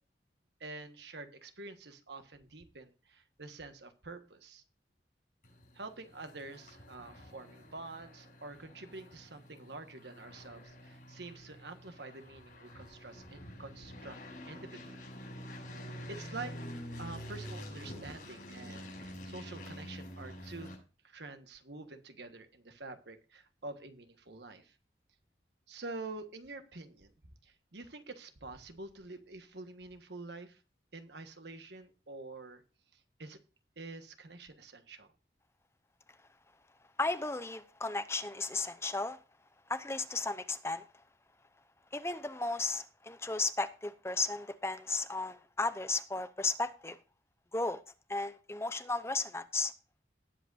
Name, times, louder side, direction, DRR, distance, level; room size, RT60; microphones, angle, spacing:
voice 1, 0.6-4.6 5.7-14.2 14.5-15.0 16.1-16.5 17.0-20.7 21.0-24.7 25.7-27.1 27.4-30.6 30.9-32.6 32.9-33.4 33.8-35.1, right 3 dB, 75° right, 1.4 m, -47 dB
sound 1, 5.4-20.8, equal, 45° left, 6.6 m, -47 dB
voice 2, 37.0-39.2 39.7-40.8 41.9-47.0 47.5-47.8 48.1-49.7, left 3 dB, 15° left, 0.7 m, -34 dB
19.0 x 7.9 x 2.6 m
head